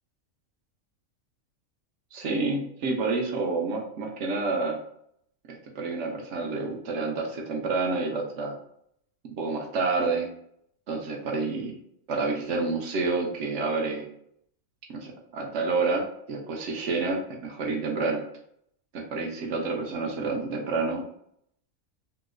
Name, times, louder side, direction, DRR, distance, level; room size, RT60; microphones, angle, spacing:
voice 1, 2.1-4.8 5.5-8.5 9.4-10.3 10.9-11.8 12.1-14.0 14.9-18.2 18.9-21.0, right 3 dB, 65° right, 1 dB, 0.8 m, -29 dB
2.9 x 2.0 x 3.5 m, 0.72 s
omnidirectional pair, 1.5 m